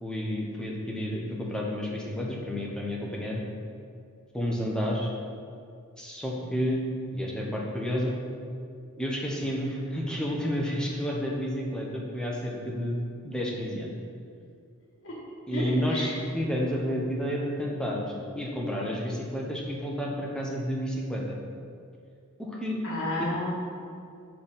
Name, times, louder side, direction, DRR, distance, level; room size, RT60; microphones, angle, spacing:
voice 1, 0.0-3.4 4.3-5.1 6.0-6.8 7.1-8.1 9.0-13.9 15.5-21.4 22.4-22.8 23.2-23.3, equal, 5° left, -2 dB, 0.9 m, -30 dB
voice 2, 15.5-16.2 22.8-23.5, left 1 dB, 65° left, -4 dB, 1.5 m, -31 dB
5.1 x 4.6 x 5.7 m, 2.3 s
head